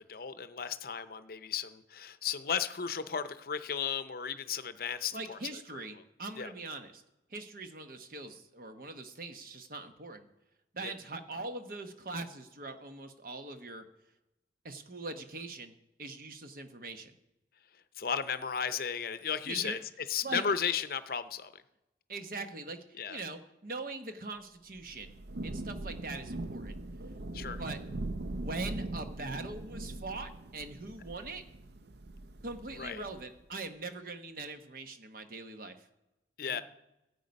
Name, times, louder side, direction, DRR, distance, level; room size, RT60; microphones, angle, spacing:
voice 1, 0.1-5.4 5.7-5.8 6.4-6.5 10.8-10.9 18.0-19.8 20.1-21.5 23.0-23.2 27.3-27.6 32.8-33.0 36.4-36.6, left 7 dB, 55° left, 12 dB, 0.6 m, -34 dB
voice 2, 5.1-7.0 7.3-10.3 10.7-13.8 14.6-17.1 19.5-19.8 20.2-20.4 22.1-25.1 25.4-26.8 27.6-27.8 28.3-31.4 32.4-35.9 36.4-36.6, right 3 dB, 50° right, 8 dB, 1.0 m, -42 dB
Thunder / Rain, 24.8-33.4, right 2 dB, 65° right, 0.6 m, -41 dB
15.0 x 8.2 x 5.3 m, 0.96 s
head